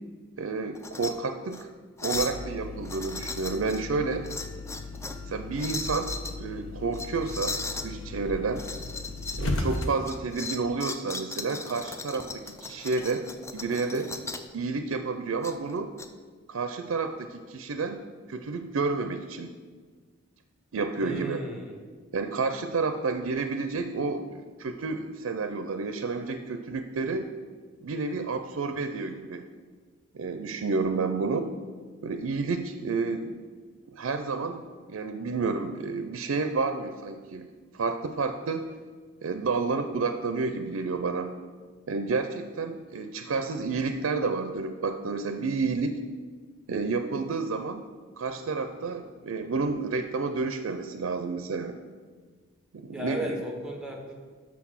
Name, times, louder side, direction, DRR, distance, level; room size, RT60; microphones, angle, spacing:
voice 1, 0.4-1.7 2.0-4.3 5.2-8.6 9.4-13.2 13.5-14.2 14.5-15.9 16.5-19.5 20.7-21.4 22.1-27.3 27.8-29.5 30.1-31.5 32.0-33.4 33.9-37.5 37.7-38.7 39.2-41.3 41.9-46.0 46.7-47.9 48.2-51.8 52.7-53.4, right 4 dB, 85° right, 7 dB, 0.5 m, -30 dB
sound 1, 0.7-1.1 1.5-1.6 2.0-2.4 2.8-3.8 4.2-5.2 5.6-6.3 6.9-7.9 8.5-9.4 9.7-14.5 15.4-16.1, left 3 dB, 15° left, 0.4 m, -37 dB
sound 2, 2.1-10.2, left 2 dB, 75° left, 1.0 m, -36 dB
voice 2, 21.0-21.8 52.9-54.1, equal, 5° right, 1 dB, 1.1 m, -35 dB
6.0 x 5.9 x 6.2 m, 1.5 s
head